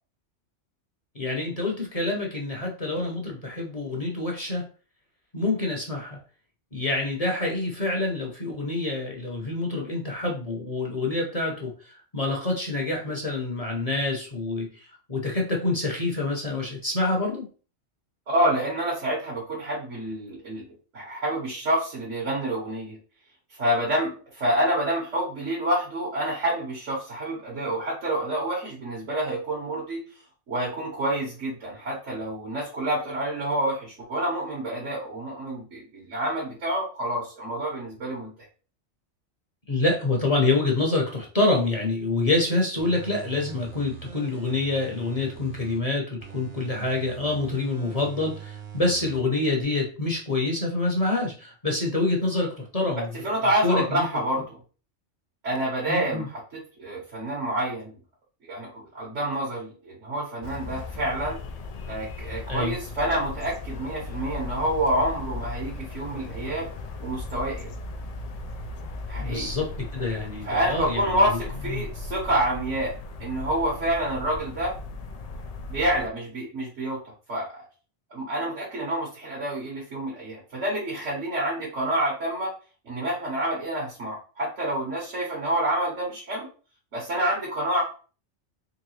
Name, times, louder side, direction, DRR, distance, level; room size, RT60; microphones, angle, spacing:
voice 1, 1.1-4.7 5.3-6.2 6.7-14.7 15.1-17.5 39.7-53.1 53.6-54.0 55.9-56.3 62.5-62.8 69.1-71.4 71.7-71.8, left 2 dB, 35° left, 0 dB, 0.8 m, -27 dB
voice 2, 18.3-20.6 20.9-23.0 23.6-30.0 30.5-38.3 53.2-54.6 55.4-57.9 58.5-61.4 61.8-66.7 67.0-67.7 69.1-69.5 70.4-72.9 73.2-74.7 75.7-77.0 77.3-77.5 78.1-82.5 82.9-86.5 86.9-87.8, right 1 dB, 80° right, -6 dB, 1.8 m, -28 dB
sound 1, 42.8-45.8 46.2-49.2 49.6-49.7, right 7 dB, 60° right, 1.0 m, -42 dB
sound 2, 60.4-76.1, left 3 dB, 80° left, 0.3 m, -37 dB
3.8 x 3.2 x 3.2 m, 0.37 s
omnidirectional pair, 1.2 m